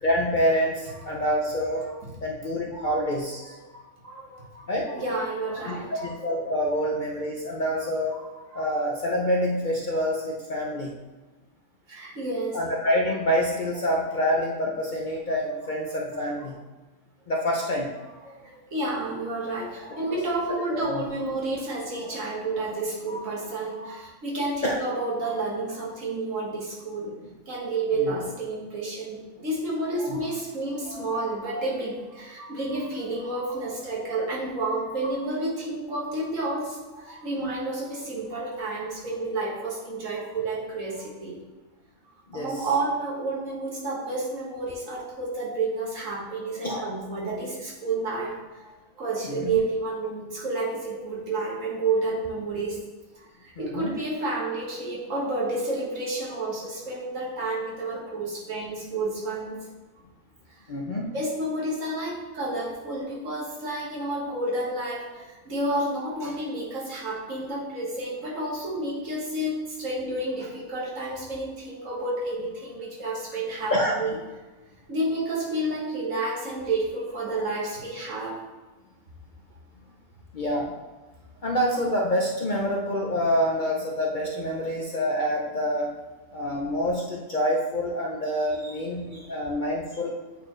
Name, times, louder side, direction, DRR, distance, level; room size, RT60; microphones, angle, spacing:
voice 1, 0.0-1.9 2.2-3.5 4.7-4.9 5.7-8.2 8.5-10.9 12.5-16.6 17.3-17.9 20.1-20.2 20.7-21.0 24.6-24.8 28.0-28.1 30.1-30.2 42.3-42.7 46.6-46.8 49.2-49.6 53.6-54.0 60.7-61.1 73.7-74.1 80.3-80.8 81.4-85.9 86.3-90.1, equal, 50° left, -1 dB, 0.6 m, -27 dB
voice 2, 1.8-2.1 2.7-3.0 3.4-6.1 6.7-6.8 8.1-8.6 11.9-12.6 18.2-27.1 27.5-41.4 42.3-52.8 53.1-59.6 61.1-74.2 74.9-78.4 88.6-88.8 89.1-89.3, right 2 dB, 70° right, -5 dB, 1.9 m, -30 dB
8.4 x 4.3 x 3.1 m, 1.2 s
omnidirectional pair, 1.4 m